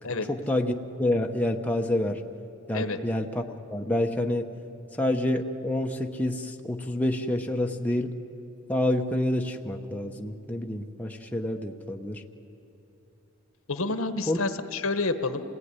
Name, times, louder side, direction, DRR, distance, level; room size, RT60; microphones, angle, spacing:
voice 1, 0.3-2.2 2.7-4.5 4.9-8.2 8.7-12.2 14.3-14.4, left 1 dB, 5° left, 2 dB, 1.0 m, -28 dB
voice 2, 13.7-15.4, left 3 dB, 75° left, 9 dB, 1.3 m, -29 dB
27.0 x 18.5 x 9.7 m, 2.9 s
head